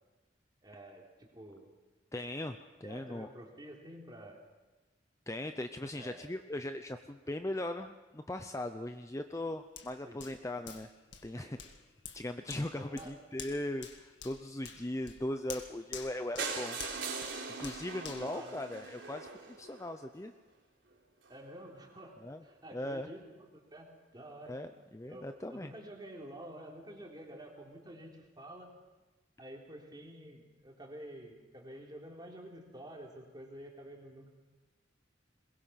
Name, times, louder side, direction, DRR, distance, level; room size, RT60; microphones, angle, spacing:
voice 1, 0.6-1.7 2.8-4.4 5.9-6.2 10.0-10.2 11.3-11.6 12.7-13.1 18.2-18.6 21.3-24.6 25.0-28.7 29.4-34.3, right 1 dB, 25° right, 0 dB, 3.4 m, -49 dB
voice 2, 2.1-3.3 5.3-10.9 11.2-11.6 12.1-16.8 17.2-20.3 22.2-22.4 22.7-23.1 24.5-25.7, left 1 dB, 15° left, 7 dB, 0.6 m, -39 dB
Hands, 9.8-19.3 19.7-19.9, left 7 dB, 70° left, 1.9 m, -50 dB
sound 1, 16.4-20.3 20.9-21.0 21.2-21.4 21.6-21.7 21.9-22.0, right 5 dB, 90° right, 3.8 m, -41 dB
22.0 x 21.5 x 5.8 m, 1.2 s
head